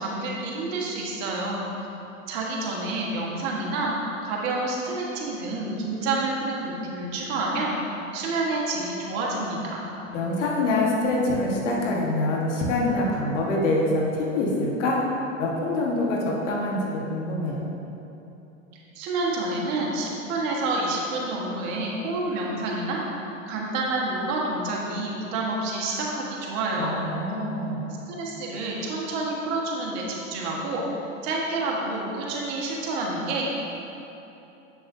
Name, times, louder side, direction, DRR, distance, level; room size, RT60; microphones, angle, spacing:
voice 1, 0.0-1.7 2.3-3.9 4.2-7.8 8.1-9.9 18.9-23.0 23.5-27.0 28.1-30.0 30.3-30.8 31.2-33.5, right 2 dB, 55° right, -3 dB, 1.5 m, -28 dB
voice 2, 10.1-15.0 15.4-17.6 26.8-27.8, left 2 dB, 65° left, -2 dB, 1.5 m, -25 dB
7.4 x 6.6 x 2.7 m, 2.9 s
hypercardioid pair, 95°, 39 cm